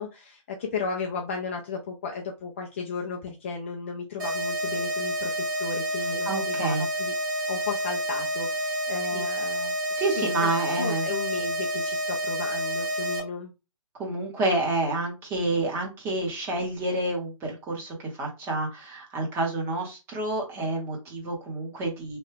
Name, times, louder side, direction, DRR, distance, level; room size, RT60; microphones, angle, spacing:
voice 1, 0.0-13.5, left 5 dB, 25° left, 0 dB, 0.3 m, -35 dB
sound 1, 4.2-13.2, equal, 35° right, 1.6 m, -29 dB
voice 2, 6.2-6.8 9.1-9.2 10.0-11.1 13.9-22.2, right 2 dB, 15° right, 0 dB, 0.8 m, -29 dB
3.0 x 2.2 x 3.1 m, 0.27 s
hypercardioid pair, 155°, 17 cm